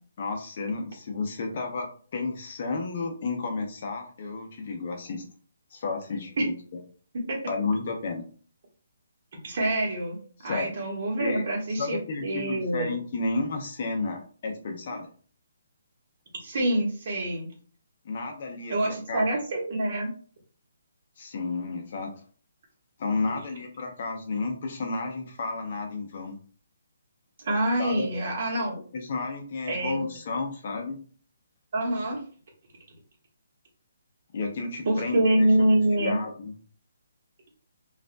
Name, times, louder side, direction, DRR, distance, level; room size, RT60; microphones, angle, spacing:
voice 1, 0.2-5.2 5.7-6.5 7.5-8.3 10.4-10.7 11.2-11.4 11.8-15.1 18.0-19.3 21.2-22.2 23.0-26.4 27.8-28.1 28.9-31.0 34.3-35.7 36.0-36.5, left 3 dB, 45° left, 4 dB, 0.7 m, -32 dB
voice 2, 9.4-12.9 16.3-17.5 18.7-20.1 27.4-28.8 29.7-30.0 31.7-32.2 34.8-36.2, right 1 dB, 45° right, -1 dB, 1.4 m, -26 dB
5.1 x 2.5 x 2.2 m, 0.42 s
hypercardioid pair, 165°, 0 cm